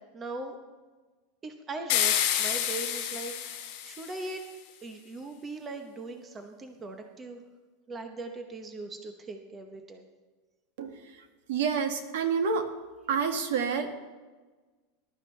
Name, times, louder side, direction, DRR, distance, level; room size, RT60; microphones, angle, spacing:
voice 1, 0.1-0.6 1.4-4.5 4.8-7.4 7.9-10.0, right 3 dB, 15° right, 5 dB, 0.8 m, -40 dB
sound 1, 1.9-4.3, left 10 dB, 50° left, 3.0 m, -29 dB
voice 2, 11.5-12.6 13.1-13.9, right 6 dB, 65° right, 6 dB, 1.6 m, -28 dB
20.5 x 12.0 x 3.2 m, 1.3 s
supercardioid pair, 170°, 0 cm